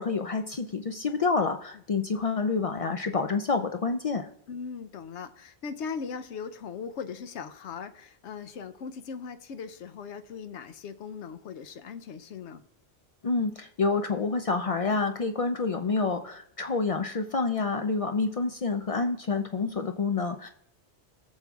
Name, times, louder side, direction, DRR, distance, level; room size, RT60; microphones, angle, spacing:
voice 1, 0.0-4.3 13.2-20.5, left 4 dB, 60° left, 6 dB, 0.3 m, -28 dB
voice 2, 4.5-12.6, left 6 dB, 90° left, 9 dB, 0.9 m, -39 dB
21.0 x 7.1 x 2.3 m, 0.70 s
omnidirectional pair, 1.1 m